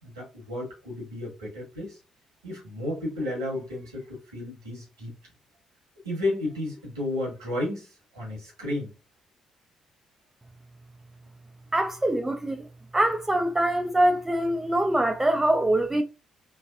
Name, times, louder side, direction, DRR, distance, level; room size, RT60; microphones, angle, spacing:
voice 1, 0.0-2.0 2.4-5.1 6.0-8.9, left 1 dB, 85° right, 1.2 m, -32 dB
voice 2, 11.7-12.7 12.9-16.0, right 1 dB, 15° right, 0.5 m, -24 dB
3.2 x 2.2 x 2.5 m
hypercardioid pair, 45°, 2 cm